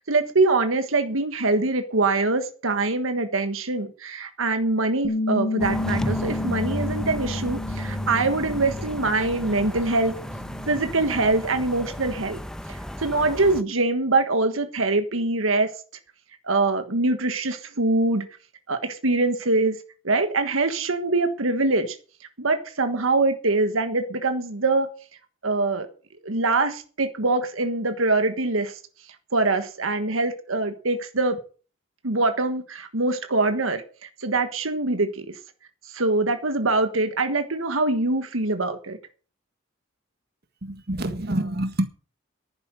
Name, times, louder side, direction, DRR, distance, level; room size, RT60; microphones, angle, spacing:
voice 1, 0.0-10.1 10.7-12.4 12.7-15.7 16.4-18.3 18.7-19.7 20.0-22.0 22.4-24.9 25.4-25.9 26.2-28.7 29.3-31.4 32.0-35.3 35.9-39.0, right 3 dB, 80° right, 9 dB, 1.4 m, -23 dB
Bass guitar, 5.0-11.3, left 2 dB, 55° left, 1.2 m, -32 dB
sound 1, 5.6-13.6, equal, 5° left, 0.8 m, -33 dB
voice 2, 40.6-41.9, right 1 dB, 50° right, 9 dB, 1.6 m, -27 dB
11.5 x 9.6 x 6.6 m, 0.39 s
head